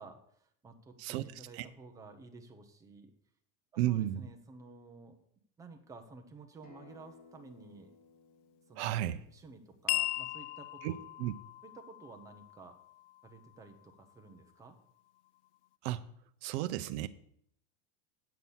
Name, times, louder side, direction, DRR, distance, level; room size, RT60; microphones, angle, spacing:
voice 1, 0.0-3.1 3.7-5.2 5.6-7.9 8.7-9.0 9.3-11.0 11.6-12.8 13.2-14.8, right 3 dB, 10° right, 4 dB, 0.7 m, -53 dB
voice 2, 3.8-4.3 8.8-9.2 10.8-10.9 11.2-11.3 15.8-16.1 16.4-17.1, right 13 dB, 65° right, 11 dB, 0.6 m, -33 dB
Acoustic guitar, 6.6-11.8, left 5 dB, 25° left, 1.3 m, -62 dB
sound 1, 9.9-14.5, left 16 dB, 75° left, 0.5 m, -39 dB
8.2 x 6.0 x 7.1 m, 0.67 s
cardioid pair, 175°, 36 cm